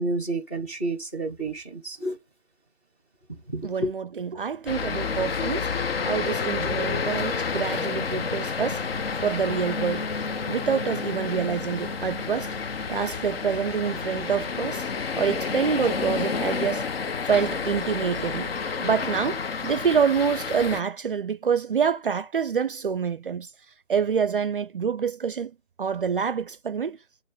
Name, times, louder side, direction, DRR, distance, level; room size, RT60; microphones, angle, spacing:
voice 1, 0.0-2.2 3.3-3.9, right 2 dB, 10° left, 0.6 m, -30 dB
voice 2, 3.6-5.7 6.0-8.9 9.2-10.1 10.5-12.6 12.9-14.9 15.2-16.9 17.2-18.5 18.8-23.5 23.9-25.5 25.8-27.0, right 6 dB, 50° right, 0.4 m, -26 dB
sound 1, 4.7-20.8, left 5 dB, 60° left, 0.7 m, -30 dB
8.5 x 3.0 x 5.0 m
hypercardioid pair, 160°, 34 cm